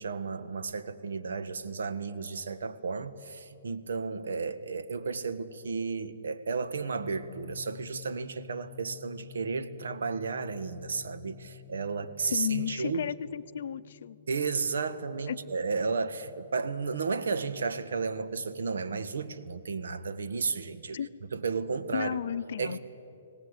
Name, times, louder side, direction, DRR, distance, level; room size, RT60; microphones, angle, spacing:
voice 1, 0.0-13.0 14.3-21.0 21.3-22.2 22.6-22.8, right 4 dB, 85° right, 1.4 m, -33 dB
sound 1, 6.6-20.2, left 14 dB, 60° right, 5.5 m, -53 dB
voice 2, 12.3-14.2 15.3-15.4 20.9-21.1 21.9-22.8, left 9 dB, 60° left, 0.7 m, -33 dB
25.0 x 18.5 x 8.1 m
hypercardioid pair, 160°, 0 cm